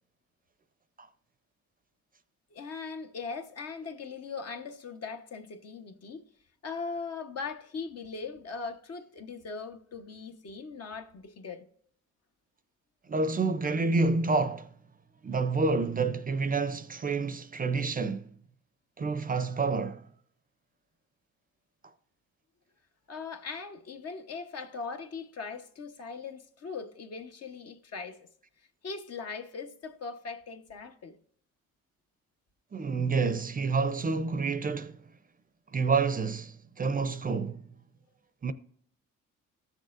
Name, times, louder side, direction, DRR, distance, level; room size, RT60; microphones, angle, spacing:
voice 1, 2.5-6.3 6.6-11.7 23.1-28.3 28.6-31.2, left 4 dB, 55° left, 1.1 m, -40 dB
voice 2, 13.1-14.7 15.2-18.3 19.0-20.0 32.7-35.0 35.7-37.6 38.4-38.5, right 4 dB, 30° right, 0.6 m, -28 dB
14.5 x 6.5 x 2.5 m
cardioid pair, 90°, 30 cm